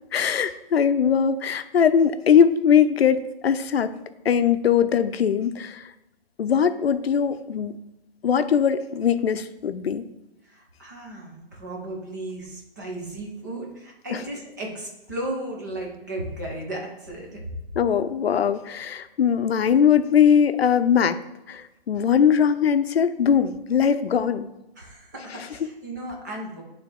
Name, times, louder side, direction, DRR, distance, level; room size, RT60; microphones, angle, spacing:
voice 1, 0.1-3.9 4.2-5.8 6.4-7.8 8.2-10.0 14.1-14.2 17.8-21.2 21.5-24.5 25.3-25.5, left 7 dB, 80° left, 12 dB, 0.6 m, -21 dB
voice 2, 10.5-17.4 24.8-26.6, right 1 dB, 20° right, -1 dB, 0.8 m, -35 dB
8.0 x 3.4 x 3.5 m, 0.91 s
hypercardioid pair, 175°, 30 cm